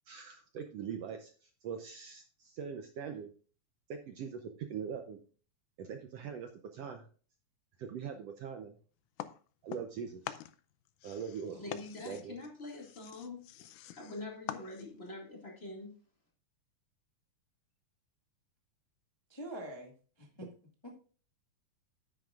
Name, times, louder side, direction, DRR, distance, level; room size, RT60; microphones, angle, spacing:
voice 1, 0.1-3.3 3.9-5.2 5.8-7.1 7.8-8.7 9.6-10.4 11.0-11.6 12.0-12.4, right 7 dB, 80° right, 1.4 m, -42 dB
Tree Hit and Scrape, 9.2-10.0 10.2-15.1, left 13 dB, 80° left, 1.9 m, -45 dB
voice 2, 11.5-13.4 14.0-16.0, left 2 dB, 20° left, 1.9 m, -45 dB
voice 3, 19.3-20.5 20.8-21.0, right 1 dB, 40° left, 0.3 m, -45 dB
10.5 x 9.5 x 2.4 m
omnidirectional pair, 3.8 m